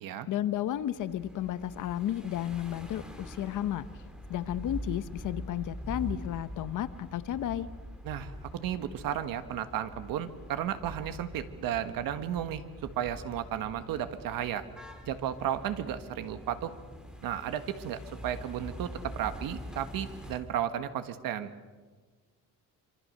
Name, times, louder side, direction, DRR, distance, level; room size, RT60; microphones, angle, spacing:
voice 1, 0.3-3.8 4.3-7.7, left 11 dB, 60° left, 13 dB, 0.9 m, -33 dB
sound 1, 0.7-20.4, equal, ahead, 2.2 m, -44 dB
voice 2, 8.0-14.6 15.0-16.7 17.2-21.5, right 10 dB, 70° right, 10 dB, 1.6 m, -34 dB
26.0 x 25.0 x 6.6 m, 1.4 s
cardioid pair, 180°, 35 cm